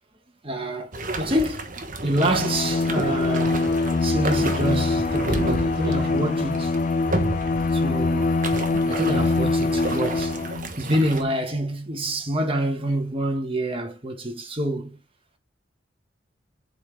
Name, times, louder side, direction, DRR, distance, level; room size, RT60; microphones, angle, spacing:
voice 1, 0.4-0.9 1.2-3.6 4.0-6.7 7.5-8.3 8.9-10.3 10.8-14.9, right 1 dB, 30° right, 1.6 m, -26 dB
sound 1, 0.9-11.2, right 2 dB, 45° right, 1.3 m, -31 dB
Bowed string instrument, 2.1-10.7, left 3 dB, 45° left, 0.3 m, -24 dB
7.8 x 3.9 x 3.3 m
head